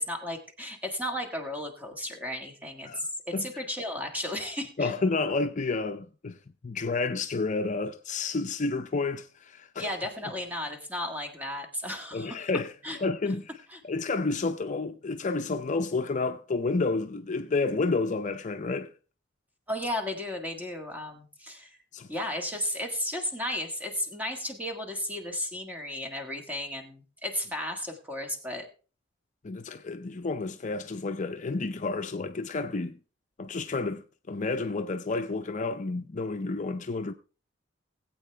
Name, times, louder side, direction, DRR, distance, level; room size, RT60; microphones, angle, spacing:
voice 1, 0.0-4.9 9.8-12.4 12.8-13.0 13.7-13.8 19.7-21.8 22.1-28.7, left 1 dB, 10° right, 1.7 m, -34 dB
voice 2, 4.8-6.4 6.6-9.9 12.1-12.7 13.0-13.5 13.8-18.9 21.9-22.1 29.4-33.0 33.4-37.1, left 3 dB, 40° left, 0.5 m, -30 dB
19.0 x 8.3 x 3.3 m
head